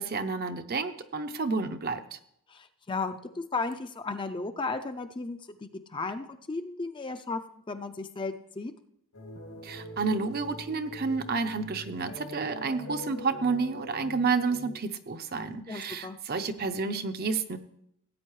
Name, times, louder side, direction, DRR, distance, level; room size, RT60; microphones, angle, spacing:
voice 1, 0.0-2.2 9.6-17.6, right 4 dB, 45° right, 8 dB, 0.6 m, -30 dB
voice 2, 2.5-7.4 7.7-8.7 15.7-16.2, left 3 dB, 20° left, 8 dB, 0.4 m, -35 dB
sound 1, 9.1-14.7, equal, 80° left, 2.2 m, -43 dB
17.5 x 8.6 x 3.1 m, 0.73 s
head